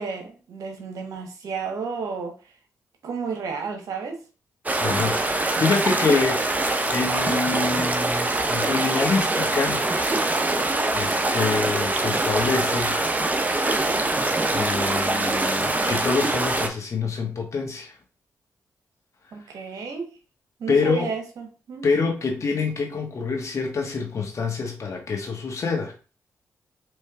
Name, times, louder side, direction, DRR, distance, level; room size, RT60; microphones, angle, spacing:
voice 1, 0.0-2.3 3.0-4.2 5.5-5.7 19.3-20.1 20.6-21.9, right 5 dB, 75° right, 1.0 m, -32 dB
sound 1, 4.7-16.7, right 2 dB, 25° right, 0.7 m, -24 dB
voice 2, 4.8-9.8 10.9-13.0 14.5-17.9 20.7-21.1 21.8-25.9, left 4 dB, 60° left, 1.2 m, -26 dB
4.3 x 3.2 x 2.3 m
supercardioid pair, 45°, 6 cm